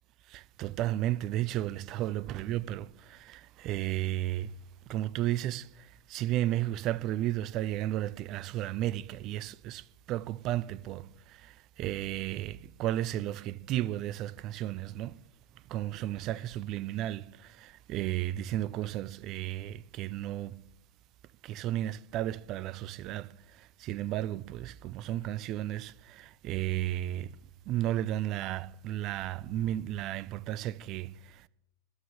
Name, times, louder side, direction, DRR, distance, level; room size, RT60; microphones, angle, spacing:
voice 1, 0.3-4.5 4.9-15.2 15.7-20.6 21.4-23.3 23.6-27.3 27.7-31.5, right 13 dB, 35° right, 0.5 m, -33 dB
20.5 x 8.5 x 7.2 m
figure-of-eight pair, 90°, 0 cm